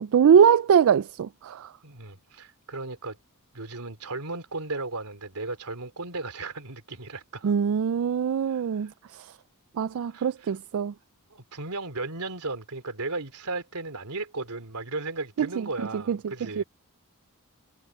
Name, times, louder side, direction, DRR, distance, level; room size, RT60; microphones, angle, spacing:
voice 1, 0.0-1.7 7.4-9.3 9.8-10.9 15.6-15.7 15.9-16.2 16.6-16.7, right 7 dB, 65° right, 0.3 m, -22 dB
voice 2, 1.8-3.2 3.5-7.5 8.5-8.9 10.1-10.6 11.3-16.6, right 3 dB, 85° right, 3.1 m, -35 dB
head